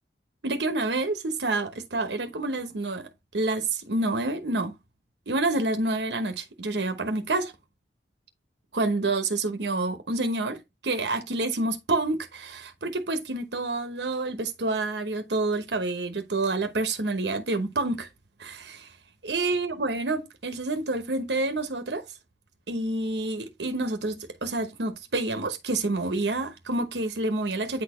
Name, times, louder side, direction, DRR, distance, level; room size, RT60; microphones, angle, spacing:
voice 1, 0.4-4.7 5.3-7.5 8.7-18.1 18.4-18.9 19.2-22.0 22.7-27.8, right 2 dB, 80° right, 1.0 m, -28 dB
9.1 x 4.2 x 3.1 m
head